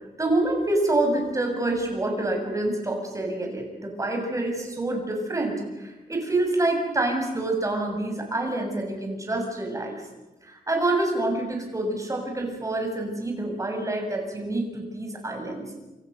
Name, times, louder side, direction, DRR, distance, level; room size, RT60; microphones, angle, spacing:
voice 1, 0.2-9.9 10.4-15.7, right 2 dB, 20° right, 2 dB, 7.1 m, -27 dB
28.0 x 28.0 x 6.9 m, 1.1 s
wide cardioid pair, 145°, 16 cm